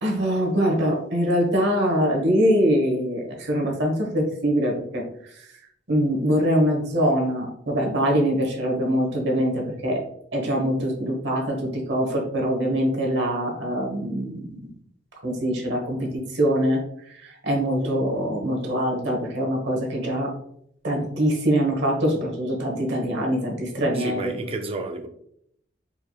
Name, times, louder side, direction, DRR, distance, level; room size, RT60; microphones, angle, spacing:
voice 1, 0.0-5.0 5.4-5.5 5.9-10.0 10.3-14.5 15.2-16.8 17.1-20.3 20.8-24.3, equal, 65° right, 1.1 m, -23 dB
voice 2, 23.9-25.1, right 3 dB, 30° right, 0.4 m, -31 dB
4.5 x 2.9 x 2.3 m
head